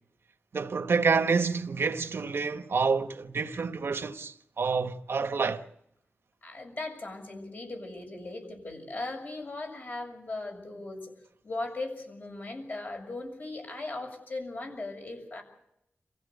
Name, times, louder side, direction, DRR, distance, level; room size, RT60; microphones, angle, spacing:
voice 1, 0.5-5.6, right 5 dB, 85° right, 1.3 m, -28 dB
voice 2, 6.4-11.1 11.4-15.4, left 2 dB, 55° left, 7.0 m, -38 dB
28.0 x 15.5 x 8.2 m
wide cardioid pair, 105°, 4 cm